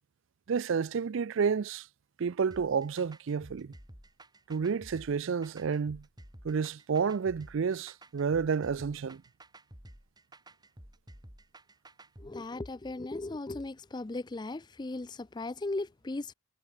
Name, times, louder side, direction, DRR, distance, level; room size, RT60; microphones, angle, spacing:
voice 1, 0.5-1.9 2.2-3.7 4.5-6.0 6.4-9.2, right 6 dB, 60° right, 0.4 m, -30 dB
sound 1, 2.5-12.3, right 1 dB, 20° right, 3.6 m, -52 dB
voice 2, 12.2-16.3, left 2 dB, 20° left, 0.4 m, -37 dB
head